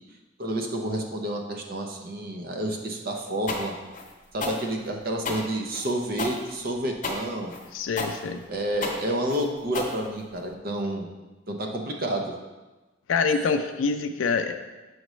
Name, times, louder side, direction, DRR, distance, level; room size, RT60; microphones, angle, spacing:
voice 1, 0.4-3.8 4.3-7.6 8.5-11.1 11.5-12.3, right 1 dB, 50° right, 3 dB, 0.6 m, -29 dB
sound 1, 3.5-10.5, left 3 dB, 40° left, 0.8 m, -33 dB
voice 2, 7.7-8.5 13.1-14.5, left 5 dB, 90° left, 7 dB, 0.4 m, -25 dB
6.4 x 5.1 x 3.1 m, 1.2 s
head